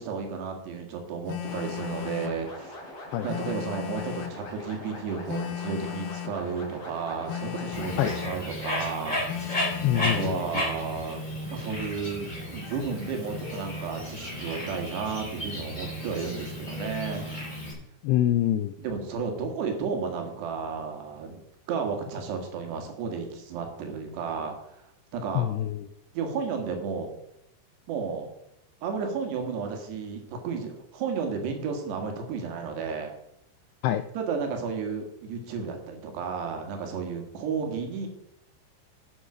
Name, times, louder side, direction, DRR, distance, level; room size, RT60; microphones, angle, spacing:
voice 1, 0.0-2.8 3.2-9.2 9.9-11.2 11.5-17.3 18.8-21.4 21.7-24.8 25.1-25.5 26.1-27.1 27.9-28.3 28.8-33.1 34.2-38.1, right 5 dB, 70° right, 4 dB, 3.7 m, -33 dB
Telephone, 1.3-2.4 3.3-4.4 5.3-6.4 7.3-8.4 9.3-10.4, left 11 dB, 70° left, 2.5 m, -36 dB
sound 1, 1.4-8.2, left 1 dB, 35° left, 3.9 m, -42 dB
voice 2, 3.1-3.5 8.0-8.1 9.8-10.6 18.0-18.7 25.3-25.9 33.8-34.0, left 12 dB, 90° left, 10 dB, 2.3 m, -26 dB
Bird, 7.7-17.7, equal, 10° left, 3.8 m, -34 dB
11.0 x 9.0 x 5.0 m, 0.79 s
omnidirectional pair, 5.3 m